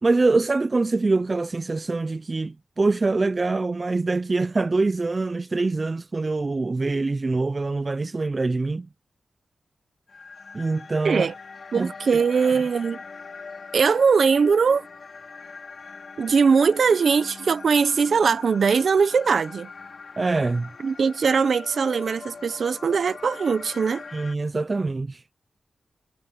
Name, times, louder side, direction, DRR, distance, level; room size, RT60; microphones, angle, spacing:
voice 1, 0.0-8.9 10.5-11.3 11.8-11.9 12.3-12.5 20.2-20.7 24.1-25.2, right 3 dB, 30° right, 0.3 m, -24 dB
sound 1, 10.1-24.4, left 4 dB, 55° left, 3.3 m, -42 dB
voice 2, 11.7-13.0 13.7-14.9 16.2-19.7 20.8-24.0, right 5 dB, 65° right, 0.8 m, -21 dB
wide cardioid pair, 140°, 0 cm